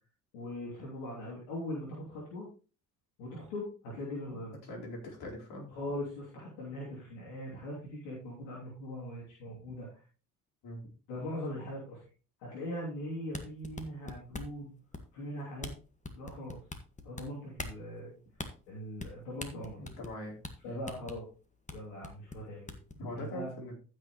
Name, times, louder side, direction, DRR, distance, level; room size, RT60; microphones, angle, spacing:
voice 1, 0.3-2.5 3.2-4.6 5.7-10.0 11.1-12.0 12.4-14.7 15.1-15.7 16.1-16.6 17.0-18.2 18.7-19.8 20.6-21.3 21.7-22.8 23.1-23.5, left 1 dB, 80° left, -5 dB, 3.1 m, -40 dB
voice 2, 4.7-5.7 10.6-10.9 19.5-20.8 22.9-23.7, left 1 dB, 65° left, -2 dB, 4.4 m, -43 dB
sound 1, 13.2-14.6 14.9-15.3 15.6-15.7 16.0-17.2 17.6-17.8 18.4-18.5 19.0-19.1 19.4-20.2 20.4-20.5 20.9-21.2 21.7-21.8 22.0-22.9, left 3 dB, 20° left, 1.6 m, -41 dB
14.5 x 6.3 x 3.1 m, 0.36 s
hypercardioid pair, 60°, 41 cm